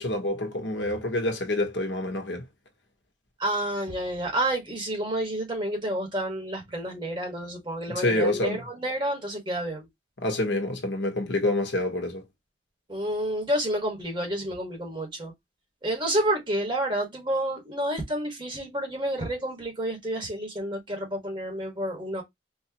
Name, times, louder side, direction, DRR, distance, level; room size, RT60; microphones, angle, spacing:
voice 1, 0.0-2.4 7.9-8.6 10.2-12.2, left 1 dB, 70° left, 1.2 m, -27 dB
voice 2, 3.4-9.9 12.9-15.3 15.8-22.2, right 1 dB, 25° right, 1.9 m, -29 dB
4.6 x 2.7 x 2.9 m
head